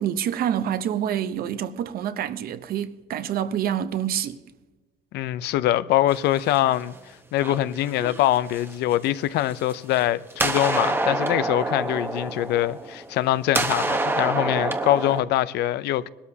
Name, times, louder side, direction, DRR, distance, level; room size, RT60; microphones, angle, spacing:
voice 1, 0.0-4.4, right 10 dB, 60° right, 0.8 m, -27 dB
voice 2, 5.1-6.9 7.3-16.1, left 14 dB, 80° left, 0.6 m, -23 dB
sound 1, 6.1-7.0 7.4-8.9 9.6-10.0 10.3-13.2 13.5-15.2, right 2 dB, 15° right, 1.0 m, -27 dB
20.0 x 12.5 x 2.8 m
cardioid pair, 110°, 17 cm